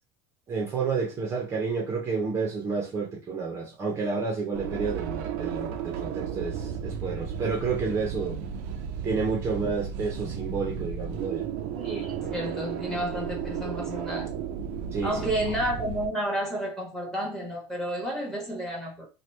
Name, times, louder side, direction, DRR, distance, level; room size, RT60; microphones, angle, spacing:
voice 1, 0.5-8.4 9.0-11.5 14.9-15.3, right 4 dB, 25° right, 0.6 m, -30 dB
sound 1, 4.5-16.1, right 7 dB, 70° right, 0.5 m, -34 dB
voice 2, 11.8-14.3 15.0-19.1, right 1 dB, 5° left, 1.0 m, -31 dB
2.9 x 2.2 x 3.1 m
cardioid pair, 155°, 10 cm